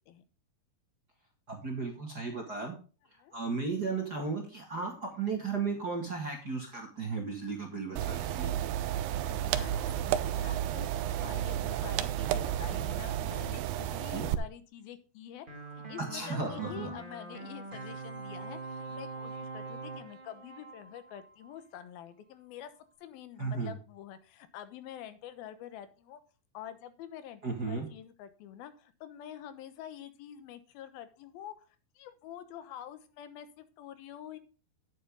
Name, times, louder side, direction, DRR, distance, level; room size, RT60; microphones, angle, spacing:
voice 1, 1.5-2.7 3.3-8.6 14.1-14.3 16.1-16.9 23.4-23.7 27.4-27.9, right 4 dB, 35° right, 2 dB, 1.7 m, -35 dB
sound 1, 8.0-14.3, right 12 dB, 80° right, 2.5 m, -32 dB
voice 2, 9.3-15.5 15.9-22.7 23.0-26.2 26.5-31.7 32.0-34.4, left 10 dB, 80° left, 11 dB, 2.9 m, -47 dB
sound 2, 15.5-21.6, right 3 dB, 20° right, 1.4 m, -43 dB
10.0 x 9.3 x 3.6 m, 0.36 s
omnidirectional pair, 4.3 m